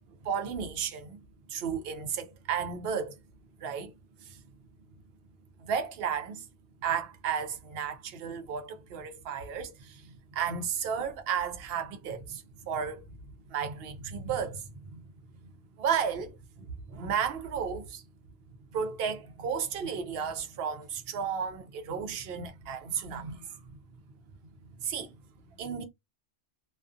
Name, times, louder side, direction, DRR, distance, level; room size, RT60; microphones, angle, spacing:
voice 1, 0.2-1.2 1.5-3.2 3.6-4.4 5.6-6.5 6.8-13.2 13.5-15.1 15.4-15.5 15.8-18.0 18.7-23.8 24.8-25.2 25.6-25.8, right 7 dB, 65° right, 0.7 m, -33 dB
2.4 x 2.3 x 2.5 m
omnidirectional pair, 1.2 m